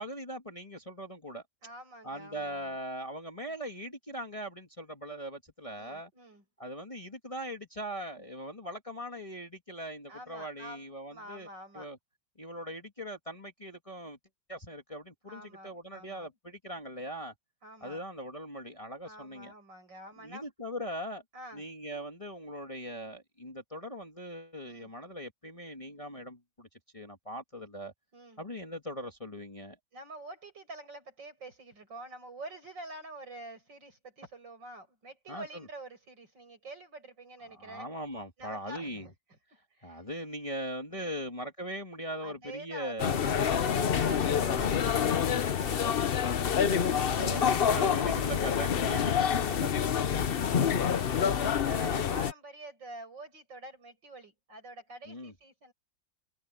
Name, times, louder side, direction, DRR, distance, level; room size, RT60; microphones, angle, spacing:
voice 1, 0.0-1.4 2.0-6.1 6.6-11.5 11.7-12.0 12.4-14.2 14.5-17.3 17.8-19.5 20.2-21.2 21.5-26.7 26.9-27.9 28.4-29.8 35.3-35.7 37.5-39.1 39.8-43.2 45.2-45.4 46.8-49.8 55.1-55.3, equal, 20° left, 1.9 m, -40 dB
voice 2, 1.6-2.8 5.8-6.4 10.1-11.9 15.3-16.3 17.6-18.0 19.1-20.5 21.3-21.6 24.6-24.9 28.1-28.4 29.9-37.9 38.4-39.4 39.7-40.0 40.9-41.2 42.2-47.6 49.0-55.7, right 1 dB, 75° right, 8.5 m, -47 dB
sound 1, 43.0-52.3, left 8 dB, 60° left, 0.6 m, -27 dB
omnidirectional pair, 2.0 m